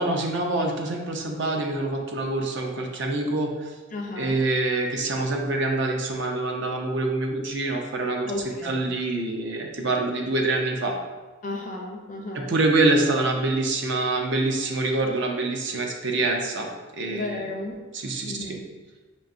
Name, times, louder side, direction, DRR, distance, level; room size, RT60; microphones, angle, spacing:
voice 1, 0.0-3.7 4.2-8.3 8.6-11.0 12.5-16.7 16.9-17.5 17.9-18.6, right 2 dB, 55° right, 2 dB, 0.5 m, -25 dB
voice 2, 3.9-4.4 8.3-8.9 11.4-12.5 17.1-17.8 18.3-18.6, left 2 dB, 40° left, 1 dB, 0.5 m, -33 dB
5.3 x 2.6 x 2.5 m, 1.3 s
head